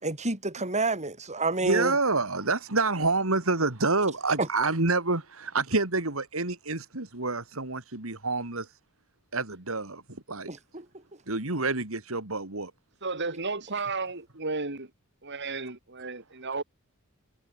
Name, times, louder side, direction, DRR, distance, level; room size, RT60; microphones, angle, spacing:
voice 1, 0.0-1.9 10.5-10.8, right 3 dB, 35° right, 7.6 m, -29 dB
voice 2, 1.6-8.7 9.3-10.0 10.3-10.5 11.3-12.7, right 3 dB, 70° right, 3.1 m, -28 dB
voice 3, 13.0-14.9 15.2-16.6, right 3 dB, 55° right, 4.5 m, -33 dB
head